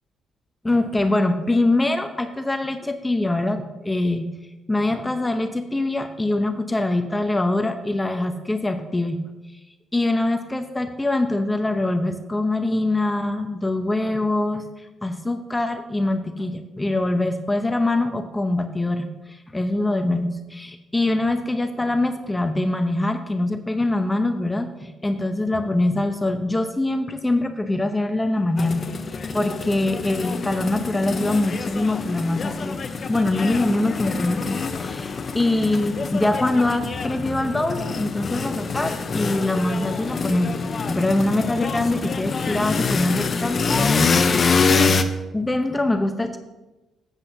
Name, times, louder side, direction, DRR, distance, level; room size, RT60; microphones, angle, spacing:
voice 1, 0.6-4.3 4.7-9.2 9.9-14.6 15.0-40.6 40.8-43.9 44.3-45.0 45.3-46.4, left 2 dB, 15° left, 7 dB, 0.7 m, -23 dB
sound 1, 28.6-45.0, left 4 dB, 40° left, 0.7 m, -25 dB
13.0 x 8.1 x 2.7 m, 1.1 s
cardioid pair, 90°, 0 cm